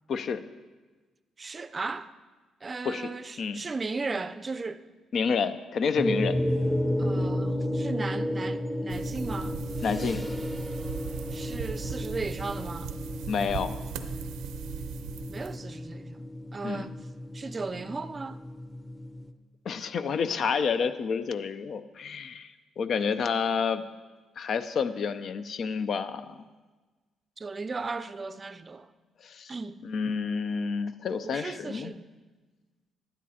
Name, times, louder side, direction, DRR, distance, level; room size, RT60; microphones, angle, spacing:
voice 1, 0.1-0.4 2.8-3.1 3.4-3.6 5.1-6.4 9.8-10.2 13.3-13.7 16.6-16.9 19.6-23.8 24.4-26.4 29.2-29.5 29.8-31.9, left 6 dB, 60° left, 0.6 m, -29 dB
voice 2, 1.4-2.1 2.6-4.8 7.0-9.6 11.3-12.9 15.3-16.3 16.5-17.0 17.3-18.4 27.4-28.9 29.5-29.8 31.2-32.1, right 3 dB, 30° right, 0.5 m, -36 dB
sound 1, 6.0-19.3, left 1 dB, 5° left, 0.8 m, -32 dB
sound 2, 8.9-15.6, right 9 dB, 90° right, 0.6 m, -39 dB
11.5 x 9.9 x 4.3 m
cardioid pair, 90°, 0 cm